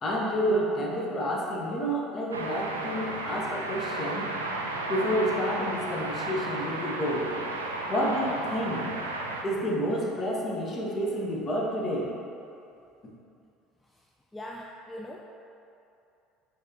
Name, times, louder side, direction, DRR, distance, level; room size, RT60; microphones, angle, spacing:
voice 1, 0.0-4.3 4.9-7.3 7.9-8.9 9.4-12.1, equal, 35° left, -3 dB, 0.9 m, -29 dB
sound 1, 2.3-9.4, right 2 dB, 85° right, 0.3 m, -33 dB
voice 2, 14.3-15.2, left 1 dB, 15° left, -2 dB, 0.3 m, -40 dB
4.9 x 4.0 x 2.7 m, 2.7 s
figure-of-eight pair, 60°, 0 cm